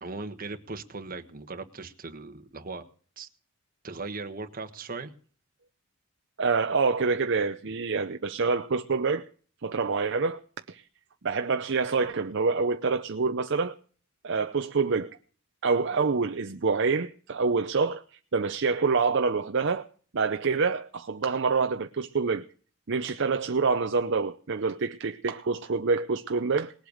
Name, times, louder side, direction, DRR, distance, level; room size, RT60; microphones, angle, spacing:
voice 1, 0.0-2.8 3.2-3.3 3.8-5.1, right 3 dB, 40° right, 1.4 m, -38 dB
voice 2, 6.4-9.2 9.6-10.4 10.7-10.9 11.2-13.7 14.2-15.1 15.6-19.9 20.1-22.4 22.9-26.7, right 4 dB, 55° right, 0.6 m, -26 dB
20.0 x 8.1 x 6.5 m
head